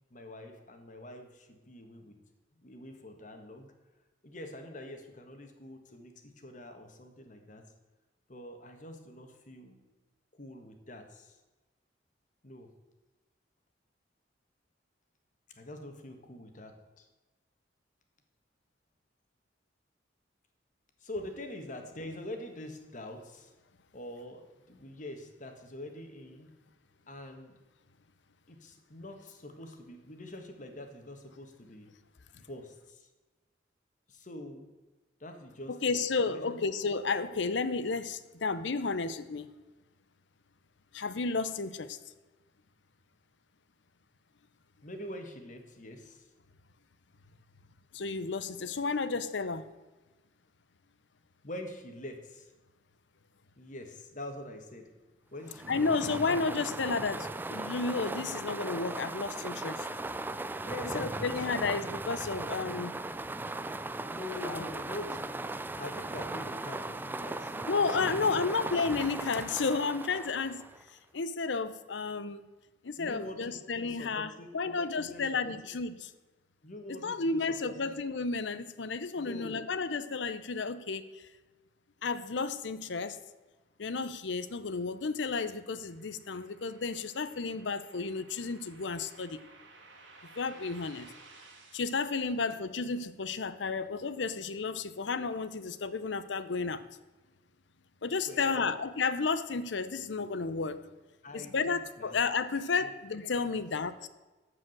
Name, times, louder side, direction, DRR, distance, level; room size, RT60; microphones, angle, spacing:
voice 1, 0.1-2.2 2.6-3.7 4.2-7.6 8.3-9.8 10.4-11.4 12.4-12.7 15.6-17.1 21.0-23.5 23.9-24.4 24.7-26.5 27.1-27.5 28.5-31.9 32.4-33.1 34.1-34.7 35.2-36.0 36.3-36.6 44.8-46.2 51.4-52.5 53.6-54.9 55.3-55.9 60.6-61.3 64.1-65.3 65.8-67.7 68.1-68.6 73.0-75.5 76.6-77.9 79.2-79.6 98.3-98.8 101.2-102.1 102.8-102.9 103.5-103.6, left 1 dB, 40° left, 5 dB, 1.5 m, -45 dB
voice 2, 35.7-39.5 40.9-42.0 47.9-49.7 55.7-59.9 60.9-62.9 64.4-64.6 67.7-70.7 71.1-72.4 72.8-76.1 76.9-81.2 82.0-83.2 83.8-89.4 90.3-91.1 91.7-96.8 98.0-100.8 101.3-104.1, left 4 dB, 70° left, 14 dB, 0.7 m, -32 dB
sound 1, 55.4-70.9, right 2 dB, 10° right, 0.3 m, -38 dB
sound 2, 84.2-92.0, right 3 dB, 80° right, 2.0 m, -57 dB
13.5 x 4.9 x 7.8 m, 1.2 s
head